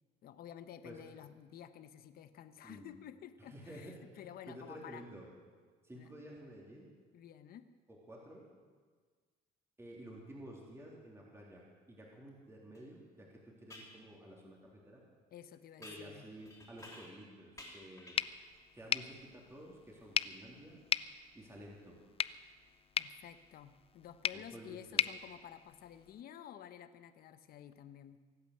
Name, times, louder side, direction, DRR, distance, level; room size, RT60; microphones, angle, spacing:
voice 1, 0.2-5.0 5.9-6.1 7.1-7.7 15.3-16.3 23.0-28.2, left 10 dB, 60° left, 11 dB, 1.0 m, -52 dB
voice 2, 2.6-2.9 3.4-4.0 4.5-5.3 5.8-6.9 7.9-8.4 9.8-15.0 15.8-18.1 18.7-20.8 21.3-22.0 24.3-25.0, equal, 15° right, -3 dB, 3.3 m, -52 dB
sound 1, 12.7-12.8 13.7-14.0 15.8-17.3 17.6-18.5, left 1 dB, 20° left, 3.4 m, -53 dB
sound 2, 18.1-26.2, left 8 dB, 35° left, 0.4 m, -39 dB
24.0 x 9.0 x 6.7 m, 1.5 s
cardioid pair, 110°, 17 cm